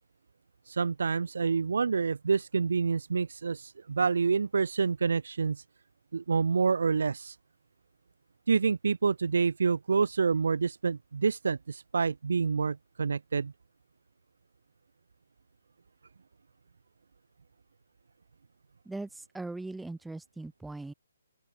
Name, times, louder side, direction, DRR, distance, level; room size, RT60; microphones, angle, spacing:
voice 1, 0.7-5.6 6.1-7.4 8.5-13.5, right 5 dB, 65° right, 0.4 m, -27 dB
voice 2, 18.8-20.9, right 2 dB, 5° right, 2.4 m, -40 dB
open air
figure-of-eight pair, 140°, 0 cm